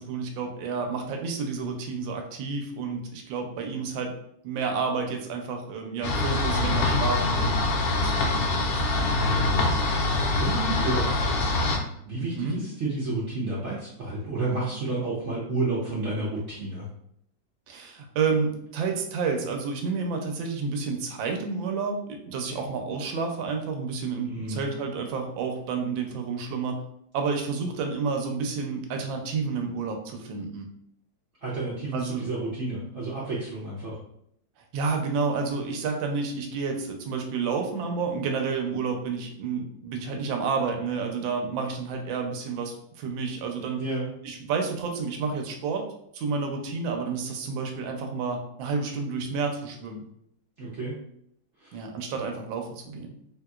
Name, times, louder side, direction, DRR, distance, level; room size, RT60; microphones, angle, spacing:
voice 1, 0.0-4.2 4.4-9.0 9.3-9.6 12.2-12.6 17.7-26.8 27.1-30.7 31.9-32.3 34.7-43.8 44.2-45.9 46.1-50.0 51.7-53.1, right 5 dB, 85° right, 3 dB, 1.3 m, -30 dB
sound 1, 6.0-11.8, left 2 dB, 75° left, 0.9 m, -24 dB
voice 2, 6.6-7.0 8.3-8.7 10.4-11.6 12.0-16.9 24.2-24.7 31.4-34.0 43.8-44.1 50.6-50.9 51.6-51.8, right 2 dB, 60° right, -7 dB, 0.7 m, -31 dB
3.4 x 2.8 x 2.3 m, 0.71 s
omnidirectional pair, 2.1 m